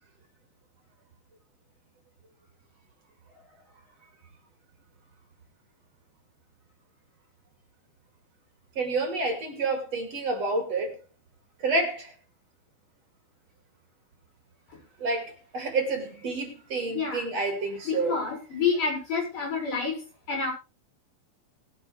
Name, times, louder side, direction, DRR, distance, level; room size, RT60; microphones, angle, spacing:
voice 1, 8.7-11.0 11.6-12.1 15.0-18.1, right 3 dB, 45° right, 3 dB, 3.3 m, -29 dB
voice 2, 16.9-17.3 17.8-20.5, left 5 dB, 55° left, -1 dB, 7.7 m, -29 dB
20.5 x 8.8 x 3.4 m, 0.31 s
omnidirectional pair, 4.4 m